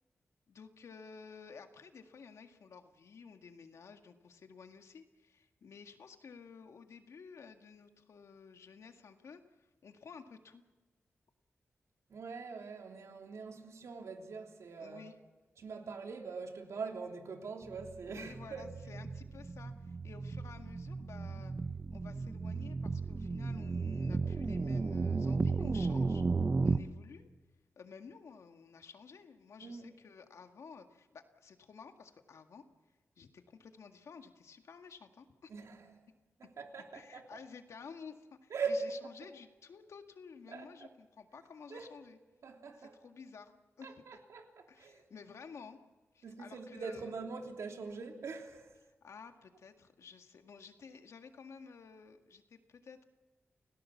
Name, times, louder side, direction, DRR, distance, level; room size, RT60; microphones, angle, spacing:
voice 1, 0.5-10.6 14.8-15.2 18.1-21.5 21.9-26.2 26.6-27.3 27.8-32.6 33.2-35.5 36.9-42.2 42.8-43.9 44.1-44.2 44.7-45.8 46.1-47.1 49.0-53.0, left 5 dB, 80° left, 5 dB, 1.9 m, -53 dB
voice 2, 12.1-15.1 15.6-18.7 29.6-29.9 35.5-35.8 36.4-37.4 38.5-38.8 40.5-40.7 41.7-41.9 42.4-42.9 43.8-45.0 46.2-48.8, right 4 dB, 85° right, 3 dB, 3.3 m, -42 dB
sound 1, 17.7-26.8, right 4 dB, 35° right, 0.9 m, -34 dB
29.5 x 18.0 x 7.2 m, 1.2 s
wide cardioid pair, 145°, 5 cm